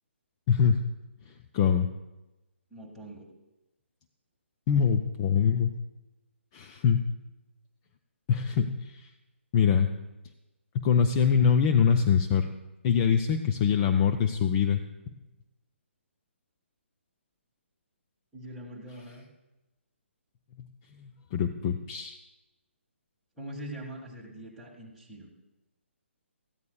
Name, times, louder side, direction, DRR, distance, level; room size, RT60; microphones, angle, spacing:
voice 1, 0.5-0.8 1.5-1.9 4.7-5.7 6.5-7.0 8.3-9.1 9.5-9.9 10.7-12.5 12.8-14.8 21.0-22.2, left 7 dB, 25° left, 6 dB, 0.5 m, -24 dB
voice 2, 2.7-3.3 18.3-19.3 23.4-25.3, right 1 dB, ahead, -5 dB, 1.8 m, -43 dB
19.0 x 14.0 x 2.3 m, 1.0 s
figure-of-eight pair, 135°, 7 cm